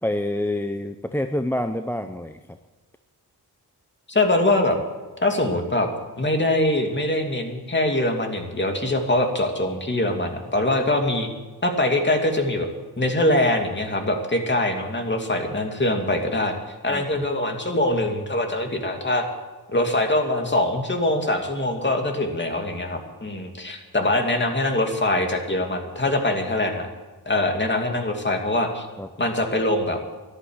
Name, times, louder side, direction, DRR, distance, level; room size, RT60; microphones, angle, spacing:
voice 1, 0.0-2.6 16.9-17.0 29.0-29.1, left 1 dB, 5° left, 8 dB, 0.6 m, -27 dB
voice 2, 4.1-4.8 5.2-5.9 6.2-11.3 11.6-12.7 13.0-16.5 16.8-19.3 19.7-26.9 27.3-28.9 29.2-30.0, left 1 dB, 25° left, 4 dB, 2.7 m, -23 dB
14.0 x 11.5 x 8.2 m, 1.3 s
cardioid pair, 80°, 40 cm